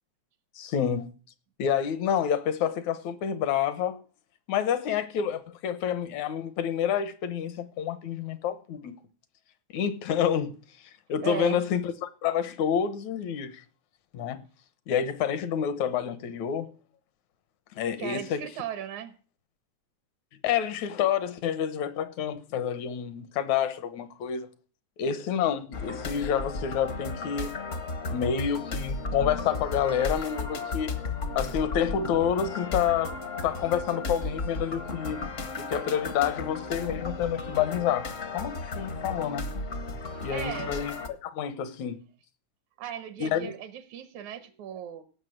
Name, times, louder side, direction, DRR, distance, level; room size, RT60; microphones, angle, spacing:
voice 1, 0.6-1.1 1.6-4.0 4.5-8.9 9.7-10.6 11.1-13.6 14.1-14.4 14.9-16.7 17.7-18.4 20.4-24.5 25.0-27.6 28.1-30.9 31.4-33.2 33.4-35.3 35.6-39.5 40.2-42.0 43.2-43.5, left 8 dB, 75° left, 2.4 m, -28 dB
voice 2, 11.2-11.6 18.0-19.1 40.1-40.7 42.8-45.0, right 9 dB, 80° right, 2.4 m, -36 dB
sound 1, 25.7-41.1, left 3 dB, 55° left, 0.8 m, -34 dB
17.5 x 6.3 x 6.4 m
omnidirectional pair, 3.3 m